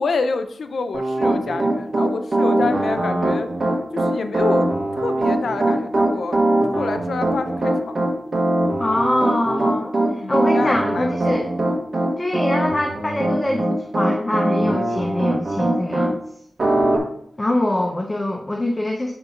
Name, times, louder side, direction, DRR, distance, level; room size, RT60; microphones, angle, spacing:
voice 1, 0.0-3.5 3.9-8.1 10.2-11.4 17.8-17.9, left 4 dB, 70° left, 8 dB, 0.6 m, -27 dB
Piano, 0.9-16.1 16.6-17.0, right 1 dB, 45° right, 1.3 m, -21 dB
voice 2, 8.8-9.9 10.3-11.5 12.2-13.6 13.9-16.2 17.4-19.1, left 1 dB, 15° left, 1 dB, 0.6 m, -23 dB
7.4 x 3.0 x 5.7 m, 0.68 s
wide cardioid pair, 165°, 0 cm